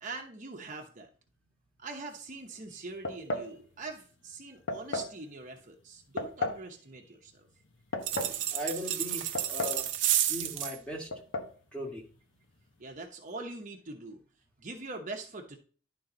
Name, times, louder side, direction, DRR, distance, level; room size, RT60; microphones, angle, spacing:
voice 1, 0.0-1.1 1.8-7.5 12.8-14.2 14.6-15.6, right 3 dB, 40° right, 2 dB, 0.9 m, -43 dB
sound 1, 3.0-3.5 4.7-5.1 6.2-6.6 7.7-8.4 9.3-9.9 10.1-10.2 11.1-11.5, left 2 dB, 70° left, 1.0 m, -34 dB
sound 2, 8.0-10.8, right 11 dB, 70° right, 0.8 m, -31 dB
voice 2, 8.5-9.9 10.3-11.1 11.7-12.1, left 1 dB, 5° left, -2 dB, 1.7 m, -38 dB
11.0 x 3.8 x 3.9 m, 0.40 s
head